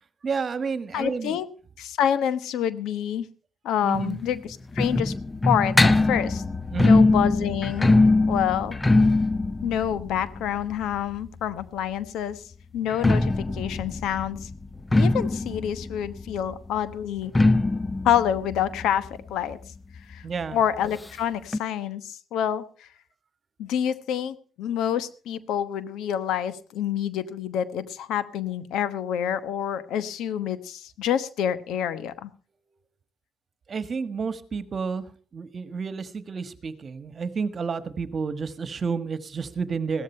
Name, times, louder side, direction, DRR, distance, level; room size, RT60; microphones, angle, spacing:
voice 1, 0.2-1.4 3.8-4.2 6.7-7.0 20.2-20.6 33.7-40.0, right 5 dB, 45° right, 12 dB, 1.4 m, -30 dB
voice 2, 0.9-1.5 1.8-3.3 3.6-5.1 5.4-6.4 6.8-7.9 8.3-8.8 9.6-12.4 12.7-14.5 14.9-17.3 18.0-19.6 20.1-20.2 20.5-22.9 23.6-32.3, left 9 dB, 85° left, 14 dB, 1.1 m, -27 dB
sound 1, 3.9-11.6 12.8-20.1 20.4-20.5 20.8-20.9 21.5-21.6, left 2 dB, 20° left, 0.7 m, -22 dB
16.0 x 13.5 x 4.4 m, 0.40 s
cardioid pair, 90°, 0 cm